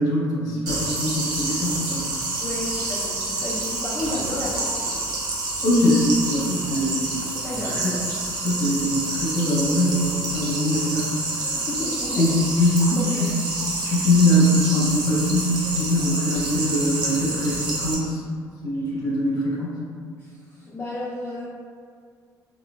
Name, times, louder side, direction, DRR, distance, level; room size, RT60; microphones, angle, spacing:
voice 1, 0.0-2.0 5.6-7.1 7.6-7.9 8.4-11.3 12.2-13.4 13.8-18.2 18.6-19.8, left 1 dB, 70° left, -5 dB, 0.7 m, -22 dB
sound 1, 0.7-17.9, right 2 dB, 75° right, 0.6 m, -28 dB
voice 2, 2.4-4.9 7.3-8.0 11.5-12.5 13.0-13.3 20.2-21.4, left 1 dB, 25° left, -8 dB, 0.5 m, -32 dB
2.9 x 2.1 x 2.2 m, 2.1 s
cardioid pair, 95°, 7 cm